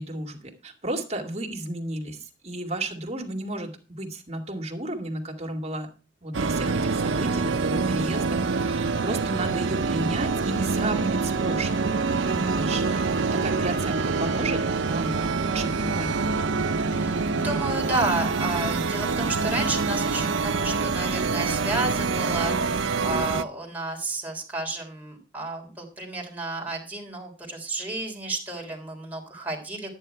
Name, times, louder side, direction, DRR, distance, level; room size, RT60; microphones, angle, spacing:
voice 1, 0.0-5.9 6.2-16.8, right 1 dB, 35° right, 1 dB, 2.3 m, -33 dB
sound 1, 6.3-23.4, right 4 dB, 75° right, 0.7 m, -26 dB
voice 2, 16.9-30.0, right 2 dB, 10° right, -1 dB, 3.4 m, -31 dB
11.0 x 9.7 x 4.6 m, 0.34 s
head